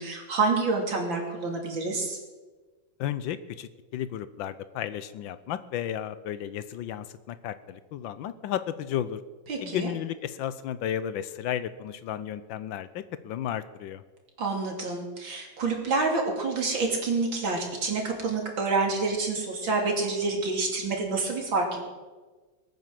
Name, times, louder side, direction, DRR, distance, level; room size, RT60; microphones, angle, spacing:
voice 1, 0.0-2.2 9.5-9.9 14.4-21.8, right 3 dB, 90° right, 1 dB, 3.7 m, -28 dB
voice 2, 3.0-9.2 9.6-14.0, left 10 dB, 85° left, 13 dB, 1.4 m, -33 dB
20.5 x 9.2 x 7.6 m, 1.3 s
omnidirectional pair, 2.0 m